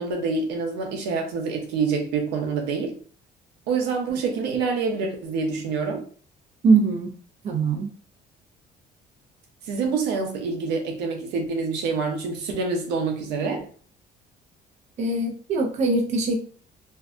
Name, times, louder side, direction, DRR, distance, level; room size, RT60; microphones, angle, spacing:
voice 1, 0.0-3.0 3.7-6.0 9.7-13.7, right 4 dB, 85° right, 0.7 m, -26 dB
voice 2, 6.6-7.1 7.4-7.9 15.0-16.4, right 3 dB, 45° right, 0.5 m, -22 dB
2.6 x 2.1 x 2.4 m
cardioid pair, 110°, 17 cm